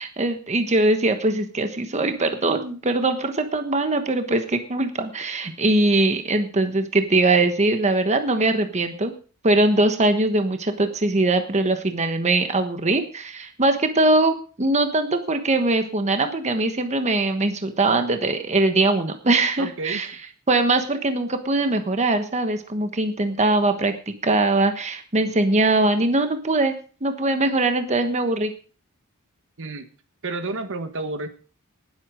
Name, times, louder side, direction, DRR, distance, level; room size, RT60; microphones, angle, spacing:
voice 1, 0.0-9.1 9.4-20.1 20.5-26.7 27.0-28.5, right 2 dB, 30° right, 7 dB, 1.3 m, -21 dB
voice 2, 19.6-20.0 29.6-29.9 30.2-31.3, right 3 dB, 60° right, 9 dB, 1.4 m, -30 dB
19.0 x 8.1 x 5.0 m, 0.39 s
head